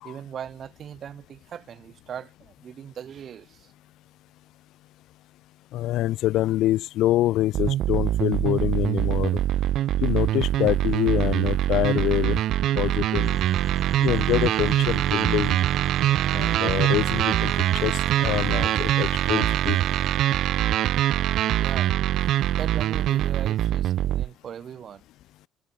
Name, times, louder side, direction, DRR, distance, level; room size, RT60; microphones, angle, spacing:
voice 1, 0.0-3.7 11.9-12.0 21.6-21.9 22.6-25.0, right 9 dB, 50° right, 7.3 m, -39 dB
voice 2, 5.7-9.4 10.0-12.4 12.8-13.4 14.0-15.6 16.3-17.5 17.8-19.8, left 15 dB, 70° left, 1.6 m, -25 dB
sound 1, 7.5-24.3, right 13 dB, 65° right, 0.5 m, -23 dB
sound 2, 13.2-20.2, right 3 dB, 20° right, 7.9 m, -42 dB
cardioid pair, 90°, 0 cm